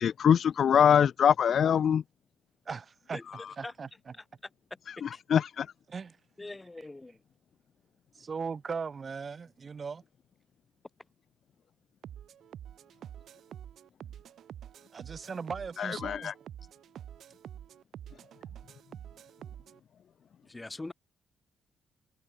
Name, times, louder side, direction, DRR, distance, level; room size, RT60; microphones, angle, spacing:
voice 1, 0.0-2.0 4.9-5.7 15.8-16.3, left 8 dB, 60° left, 0.6 m, -24 dB
voice 2, 2.7-4.1 5.9-6.2 6.8-6.9 8.2-10.0 14.9-16.3, right 5 dB, 40° right, 2.2 m, -39 dB
voice 3, 6.4-7.2 20.5-20.9, left 2 dB, 15° left, 3.3 m, -41 dB
sound 1, 12.0-19.8, right 10 dB, 65° right, 1.6 m, -47 dB
cardioid pair, 90°, 0 cm